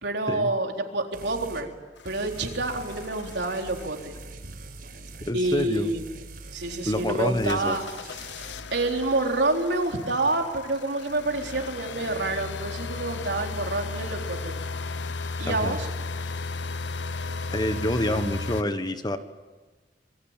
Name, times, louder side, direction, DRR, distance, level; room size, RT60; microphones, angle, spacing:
voice 1, 0.0-1.7 2.0-4.2 4.4-4.6 5.3-6.0 6.5-7.8 8.7-14.5 15.4-15.9, right 2 dB, 75° right, 2 dB, 3.9 m, -28 dB
sound 1, 1.1-1.7 2.1-8.5, right 3 dB, 60° right, 5.0 m, -43 dB
sound 2, 2.0-4.0 7.5-18.6, left 3 dB, 90° left, 0.9 m, -35 dB
voice 2, 5.3-5.9 6.9-7.8 15.4-15.8 17.5-19.2, left 1 dB, 25° left, 9 dB, 1.4 m, -27 dB
26.5 x 23.5 x 9.0 m, 1.3 s
head